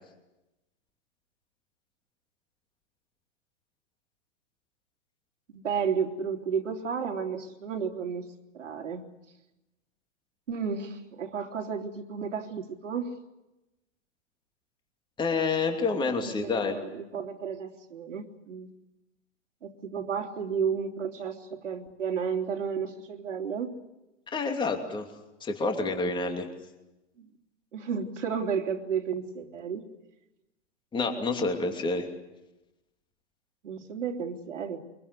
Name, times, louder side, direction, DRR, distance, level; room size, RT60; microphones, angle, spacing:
voice 1, 5.5-8.3 8.5-9.0 10.5-13.1 16.2-18.7 19.6-23.7 27.2-27.3 27.7-29.8 33.6-34.8, right 6 dB, 85° right, 1 dB, 3.3 m, -32 dB
voice 2, 15.2-16.8 24.3-25.1 25.4-26.5 30.9-32.1, left 3 dB, 15° left, 4 dB, 2.8 m, -28 dB
24.0 x 22.5 x 8.2 m, 0.97 s
hypercardioid pair, 135°, 36 cm